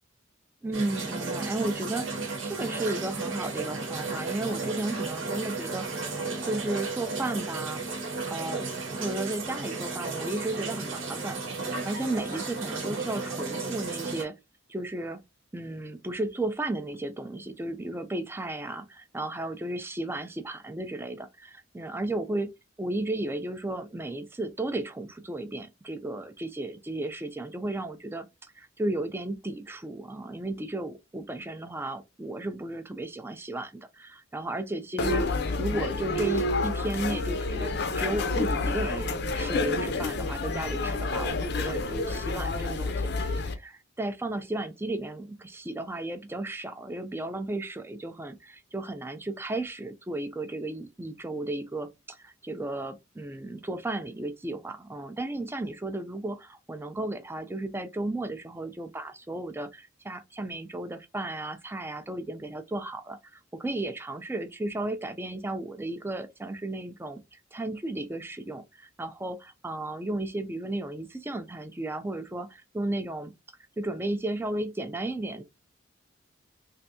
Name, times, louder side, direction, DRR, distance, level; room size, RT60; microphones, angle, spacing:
voice 1, 0.6-5.9 6.4-7.8 8.3-11.4 11.8-14.4 14.7-15.2 15.5-22.5 22.8-35.3 35.6-73.3 73.8-75.4, right 2 dB, 10° right, 0.4 m, -34 dB
sound 1, 0.7-14.2, right 3 dB, 75° right, 1.0 m, -34 dB
sound 2, 35.0-43.5, left 3 dB, 55° left, 0.5 m, -29 dB
3.3 x 2.6 x 2.7 m
head